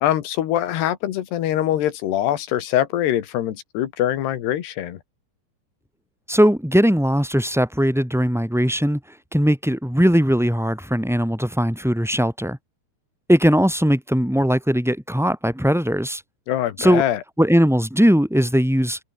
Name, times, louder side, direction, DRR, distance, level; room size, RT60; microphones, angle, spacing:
voice 1, 0.0-5.0 16.5-17.2, left 12 dB, 65° left, 3.7 m, -23 dB
voice 2, 6.3-9.0 9.3-12.6 13.3-16.2 16.8-17.0 17.4-19.0, equal, ahead, 7.4 m, -19 dB
omnidirectional pair, 5.4 m